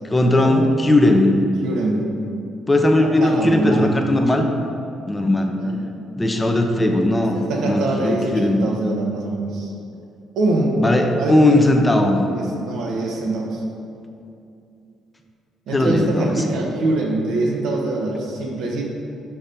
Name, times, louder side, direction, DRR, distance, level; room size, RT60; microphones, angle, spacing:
voice 1, 0.0-1.5 2.7-4.5 5.1-5.6 6.2-7.4 7.6-8.6 10.8-12.2 15.7-16.6, left 1 dB, 15° left, 3 dB, 0.6 m, -18 dB
voice 2, 1.6-2.1 3.0-4.0 5.2-5.8 7.2-9.7 10.4-11.6 12.3-13.6 15.7-18.8, right 2 dB, 75° right, 0 dB, 1.1 m, -24 dB
5.8 x 4.3 x 5.2 m, 2.6 s
cardioid pair, 95°, 0 cm